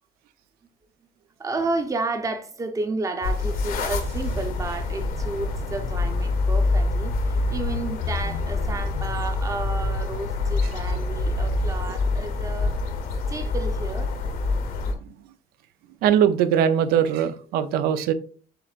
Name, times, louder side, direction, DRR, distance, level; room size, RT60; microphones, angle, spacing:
voice 1, 1.4-12.9 13.3-14.1, right 3 dB, 20° right, 0.7 m, -31 dB
sound 1, 3.2-14.9, left 3 dB, 70° left, 0.9 m, -26 dB
sound 2, 3.9-8.4 8.7-9.0, right 2 dB, 45° right, 1.2 m, -40 dB
voice 2, 16.0-18.1, right 9 dB, 80° right, 0.5 m, -21 dB
7.5 x 2.6 x 2.4 m
cardioid pair, 120°, 16 cm